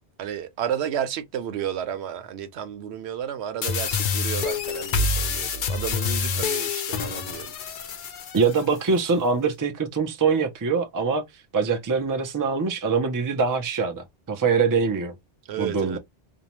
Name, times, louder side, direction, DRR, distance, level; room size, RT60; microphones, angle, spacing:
voice 1, 0.2-7.5 15.5-16.0, right 9 dB, 85° right, 0.9 m, -32 dB
sound 1, 3.6-8.6, left 5 dB, 60° left, 0.6 m, -27 dB
voice 2, 8.3-11.2 11.5-15.1 15.6-16.0, right 5 dB, 30° right, 0.4 m, -23 dB
2.6 x 2.1 x 2.9 m
omnidirectional pair, 1.1 m